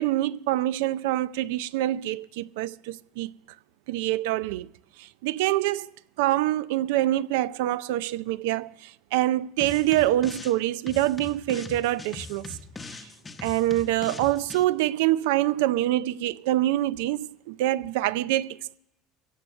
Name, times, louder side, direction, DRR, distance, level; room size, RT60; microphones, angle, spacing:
voice 1, 0.0-3.3 3.9-4.7 5.0-5.9 6.2-12.6 13.0-13.1 13.4-18.8, right 15 dB, 80° right, 0.4 m, -25 dB
sound 1, 9.6-10.6 10.9-14.6, left 3 dB, 15° left, 0.8 m, -41 dB
15.5 x 7.7 x 7.8 m
cardioid pair, 160°, 0 cm